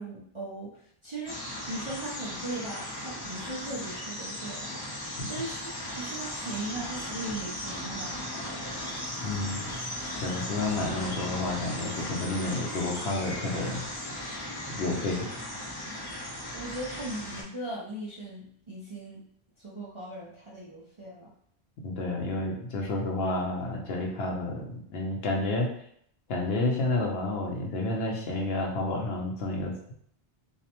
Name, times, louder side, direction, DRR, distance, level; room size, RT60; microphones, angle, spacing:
voice 1, 0.0-4.7 5.3-5.7 6.0-8.2 16.5-19.2 19.6-21.3, right 2 dB, 45° right, -5 dB, 0.4 m, -38 dB
sound 1, 1.3-17.4, left 1 dB, 35° left, 0.4 m, -37 dB
voice 2, 9.2-9.7 10.2-13.8 14.7-15.4 21.8-25.7 26.3-29.9, left 2 dB, 80° left, 0 dB, 0.9 m, -30 dB
2.6 x 2.1 x 2.8 m, 0.66 s
omnidirectional pair, 1.0 m